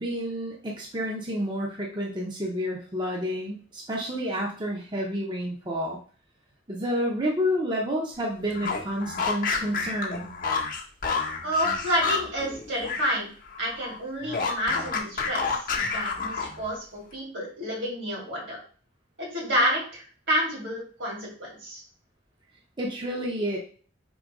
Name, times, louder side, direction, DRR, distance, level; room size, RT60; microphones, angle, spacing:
voice 1, 0.0-6.0 6.7-10.3 22.8-23.6, equal, 25° right, -2 dB, 0.7 m, -29 dB
sound 1, 8.5-13.2 13.5-16.7, left 5 dB, 50° left, 0.8 m, -29 dB
voice 2, 11.4-13.3 13.6-18.6 19.2-21.8, equal, 75° right, -2 dB, 2.4 m, -29 dB
3.8 x 2.8 x 4.7 m, 0.42 s
head